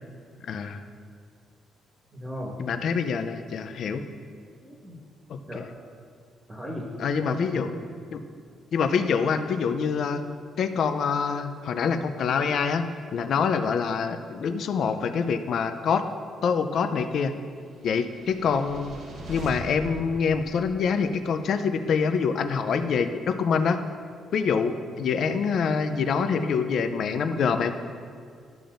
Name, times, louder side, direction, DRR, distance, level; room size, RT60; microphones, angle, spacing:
voice 1, 0.4-0.8 2.6-4.1 5.3-5.6 7.0-7.7 8.1-8.2 8.7-10.2 10.6-12.8 13.1-16.0 16.4-17.3 17.8-19.0 19.3-23.8 24.3-27.7, left 6 dB, 65° left, 9 dB, 0.5 m, -25 dB
voice 2, 2.1-2.6 4.6-5.0 5.5-5.7 6.5-6.9 7.2-7.7 24.8-24.9, equal, 25° right, -3 dB, 1.5 m, -36 dB
sound 1, 17.8-21.3, right 1 dB, 70° right, 1.1 m, -41 dB
12.0 x 6.9 x 2.5 m, 2.2 s
cardioid pair, 90°, 0 cm